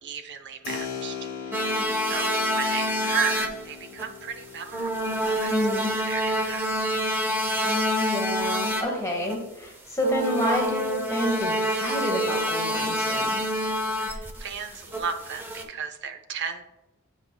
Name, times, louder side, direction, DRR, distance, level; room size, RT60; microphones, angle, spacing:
voice 1, 0.0-1.8 2.1-6.9 14.0-16.6, right 7 dB, 55° right, 6 dB, 0.6 m, -35 dB
Keyboard (musical), 0.6-9.0, left 7 dB, 70° left, 1.0 m, -41 dB
sound 1, 1.5-3.6 3.9-4.0 4.7-8.8 9.2-9.4 10.0-15.6, equal, 10° right, 0.6 m, -27 dB
voice 2, 5.5-5.9 7.6-13.4, left 1 dB, 15° left, 0 dB, 1.0 m, -29 dB
8.6 x 5.7 x 2.2 m, 0.97 s
head